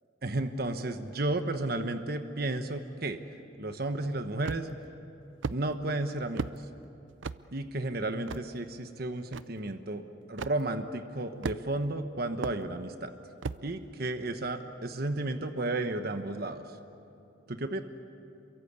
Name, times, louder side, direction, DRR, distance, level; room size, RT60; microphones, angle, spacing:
voice 1, 0.2-3.2 3.6-4.7 5.5-6.5 7.5-10.0 10.3-13.1 13.6-16.6 17.5-17.8, right 2 dB, 55° right, 8 dB, 1.1 m, -33 dB
sound 1, 4.4-4.8 5.4-5.6 6.4-6.6 7.2-7.4 8.3-8.4 9.3-9.4 10.4-10.6 11.4-11.8 12.4-12.6 13.4-13.6, right 4 dB, 85° right, 0.6 m, -34 dB
27.5 x 23.5 x 8.3 m, 2.8 s
head